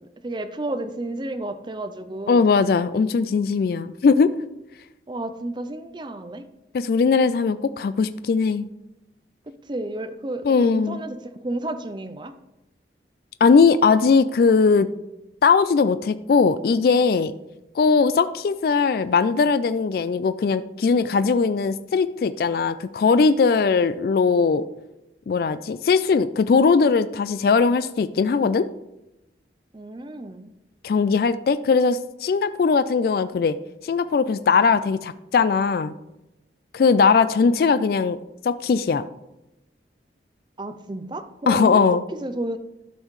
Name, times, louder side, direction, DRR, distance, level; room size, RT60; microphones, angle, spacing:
voice 1, 0.2-2.5 5.1-6.4 9.7-12.3 29.7-30.5 40.6-41.9 42.2-42.6, right 1 dB, 25° right, 9 dB, 0.5 m, -31 dB
voice 2, 2.3-4.3 6.7-8.7 10.4-11.0 13.4-14.9 15.4-17.3 17.8-24.6 25.3-28.7 30.8-33.6 33.8-35.9 36.7-38.2 38.4-39.0 41.5-42.0, left 5 dB, 55° left, 13 dB, 0.3 m, -19 dB
12.5 x 5.5 x 3.1 m, 0.92 s
head